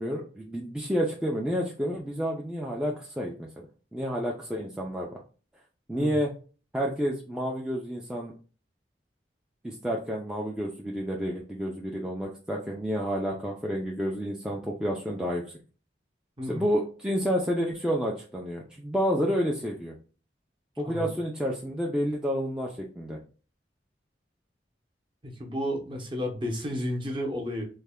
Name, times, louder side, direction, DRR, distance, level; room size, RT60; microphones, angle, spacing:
voice 1, 0.0-3.7 3.9-5.1 5.9-6.3 6.7-8.3 9.6-15.4 16.4-19.9 20.8-23.2, equal, 5° right, -2 dB, 0.3 m, -30 dB
voice 2, 25.2-27.7, equal, 25° right, 1 dB, 0.7 m, -32 dB
3.2 x 2.1 x 3.4 m, 0.38 s
head